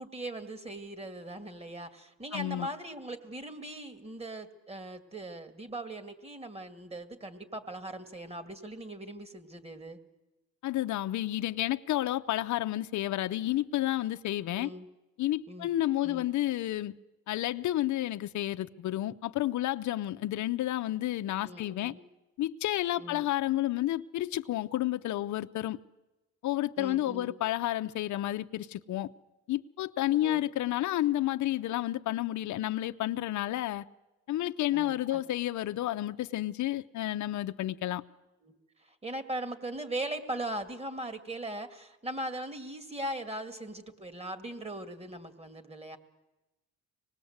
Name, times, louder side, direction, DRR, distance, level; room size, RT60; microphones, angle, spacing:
voice 1, 0.0-10.0 14.5-14.9 15.5-15.7 16.0-16.2 21.4-22.0 23.0-23.3 26.8-27.4 30.1-30.4 34.7-35.2 38.4-46.0, right 1 dB, 20° right, 2.4 m, -40 dB
voice 2, 2.3-2.7 10.6-14.7 15.2-16.9 17.3-21.9 22.4-25.8 26.4-29.1 29.5-33.9 34.3-38.0, left 14 dB, 70° left, 0.7 m, -31 dB
25.0 x 19.5 x 8.0 m
cardioid pair, 90°, 30 cm